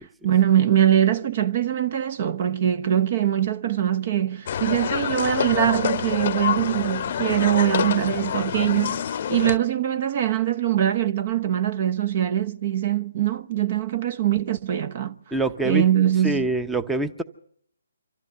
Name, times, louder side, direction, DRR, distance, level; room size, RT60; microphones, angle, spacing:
voice 1, 0.2-15.2 15.6-16.5, right 11 dB, 40° right, 1.0 m, -22 dB
sound 1, 4.5-9.6, left 9 dB, 45° left, 0.8 m, -27 dB
voice 2, 15.3-15.9 16.2-17.2, right 2 dB, 5° right, 0.8 m, -24 dB
25.5 x 15.0 x 6.8 m
figure-of-eight pair, 145°, 0 cm